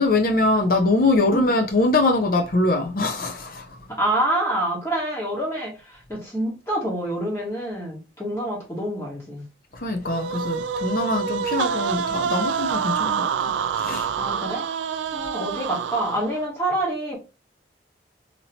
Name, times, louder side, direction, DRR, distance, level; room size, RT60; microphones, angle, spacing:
voice 1, 0.0-3.8 9.7-13.3 13.8-14.1, left 2 dB, 50° left, 0.6 m, -22 dB
voice 2, 3.9-9.5 14.2-14.6 15.1-17.2, right 1 dB, 15° left, 1.1 m, -27 dB
sound 1, 10.1-16.4, right 7 dB, 85° right, 0.3 m, -27 dB
2.9 x 2.8 x 2.8 m
head